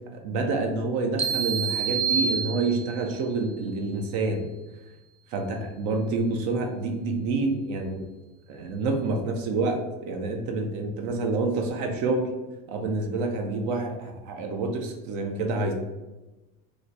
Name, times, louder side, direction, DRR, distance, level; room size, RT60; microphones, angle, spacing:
voice 1, 0.1-4.5 5.3-8.1 8.5-12.3 12.7-15.7, right 3 dB, 65° right, 3 dB, 0.7 m, -28 dB
sound 1, 1.2-3.1, right 6 dB, 20° right, 0.4 m, -27 dB
3.1 x 2.2 x 3.9 m, 1.1 s
supercardioid pair, 110°, 32 cm